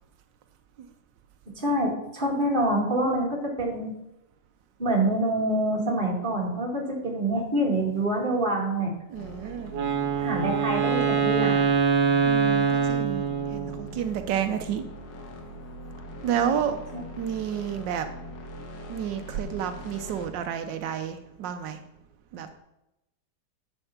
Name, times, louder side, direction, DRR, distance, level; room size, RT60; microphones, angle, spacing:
voice 1, 1.6-3.9 4.8-8.9 10.2-11.6, right 1 dB, 30° right, -1 dB, 2.3 m, -26 dB
sound 1, 9.1-20.3, equal, 85° left, 2.0 m, -42 dB
voice 2, 9.1-9.8 12.2-14.8 16.2-16.8 17.2-18.1 18.9-21.8 22.3-22.5, right 9 dB, 85° right, 8 dB, 1.4 m, -30 dB
Wind instrument woodwind instrument, 9.7-13.9, right 6 dB, 65° right, 1.7 m, -24 dB
10.0 x 5.3 x 5.9 m, 0.89 s
omnidirectional pair, 1.9 m